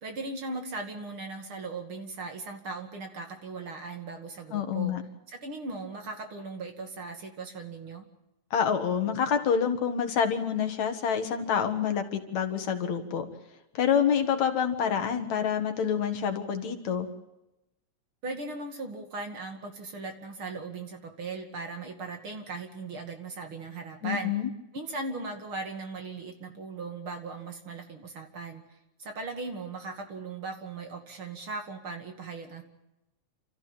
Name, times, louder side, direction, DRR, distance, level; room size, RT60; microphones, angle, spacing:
voice 1, 0.0-5.0 5.3-8.0 18.2-24.3 24.7-28.6 29.0-32.6, right 3 dB, 45° right, 5 dB, 2.9 m, -38 dB
voice 2, 4.5-5.0 8.5-13.3 13.7-17.1 24.0-24.5, left 7 dB, 70° left, 7 dB, 3.1 m, -27 dB
28.5 x 14.0 x 9.0 m, 0.93 s
omnidirectional pair, 3.4 m